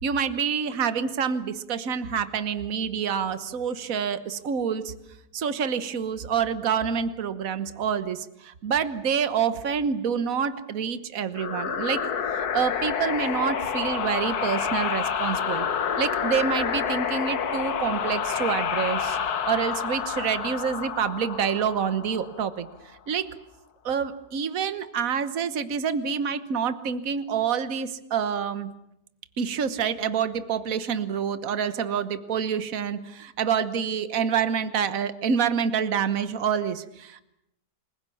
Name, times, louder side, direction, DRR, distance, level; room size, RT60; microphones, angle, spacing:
voice 1, 0.0-4.9 5.3-15.7 16.0-22.7 23.1-23.3 23.8-28.7 29.4-37.2, right 7 dB, 65° right, 11 dB, 1.6 m, -27 dB
Creepy Wind Suction, 11.3-22.7, left 7 dB, 85° left, 1.8 m, -28 dB
29.5 x 21.5 x 7.1 m, 0.82 s
omnidirectional pair, 1.6 m